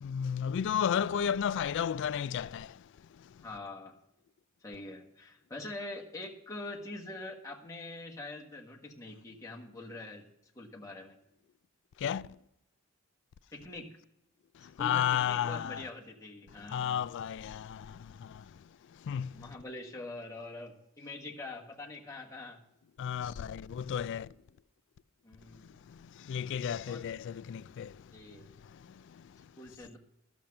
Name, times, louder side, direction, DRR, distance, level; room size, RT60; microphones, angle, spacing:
voice 1, 0.0-2.9 3.2-3.3 12.0-12.4 14.5-15.8 16.7-18.6 18.9-19.5 23.0-24.3 25.5-28.2 28.6-29.5, left 8 dB, 60° left, 0.3 m, -34 dB
voice 2, 3.4-4.0 4.6-10.3 10.5-11.2 13.5-13.9 14.6-17.0 19.3-22.6 25.2-25.7 26.8-27.1 28.1-28.5 29.6-30.0, left 2 dB, 15° left, 1.4 m, -44 dB
12.0 x 7.2 x 6.4 m
head